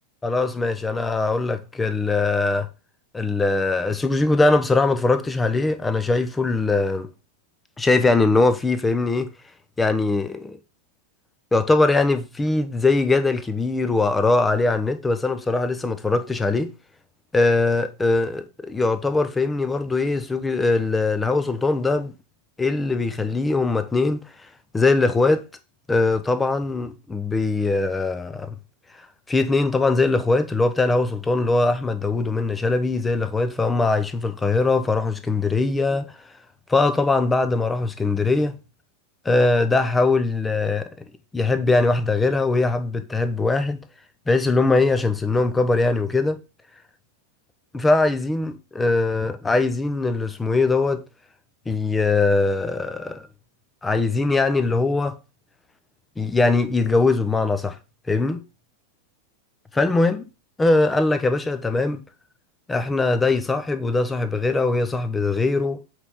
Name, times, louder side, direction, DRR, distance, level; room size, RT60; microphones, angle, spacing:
voice 1, 0.2-2.7 3.1-7.1 7.8-9.3 9.8-10.6 11.5-16.7 17.3-22.1 22.6-24.2 24.7-25.4 25.9-28.5 29.3-36.1 36.7-38.6 39.2-41.0 41.3-43.8 44.3-46.4 47.7-51.0 51.7-53.2 53.8-55.2 56.2-57.8 58.1-58.4 59.7-60.3 60.6-62.0 62.7-65.8, left 3 dB, 10° left, 0.9 m, -21 dB
7.9 x 4.9 x 3.9 m
figure-of-eight pair, 90°, 0 cm